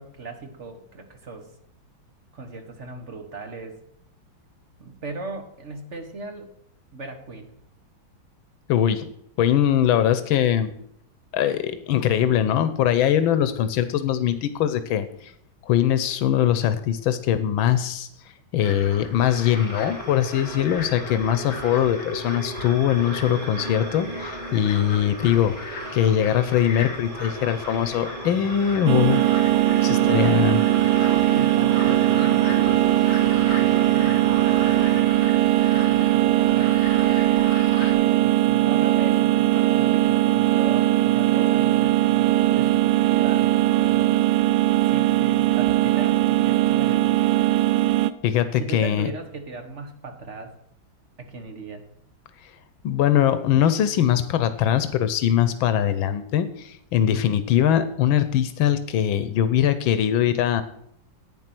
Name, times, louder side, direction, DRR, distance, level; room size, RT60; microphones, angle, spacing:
voice 1, 0.0-1.5 2.3-3.8 4.8-6.5 6.9-7.5 29.8-30.6 31.0-32.9 33.2-35.1 35.7-37.4 37.8-44.1 44.8-47.4 48.5-50.5 51.2-51.9, right 3 dB, 40° right, 6 dB, 1.6 m, -38 dB
voice 2, 8.7-9.1 9.4-10.7 11.3-15.3 15.6-18.1 18.5-25.6 25.9-29.2 29.8-30.6 48.2-49.1 52.4-52.5 52.8-60.6, left 10 dB, 85° left, 12 dB, 1.6 m, -22 dB
sound 1, 18.6-37.9, left 2 dB, 70° left, 3.9 m, -38 dB
sound 2, 19.2-35.0, right 1 dB, 20° right, 1.1 m, -37 dB
sound 3, 28.9-48.1, right 15 dB, 80° right, 1.4 m, -20 dB
11.0 x 9.0 x 6.0 m, 0.71 s
omnidirectional pair, 2.2 m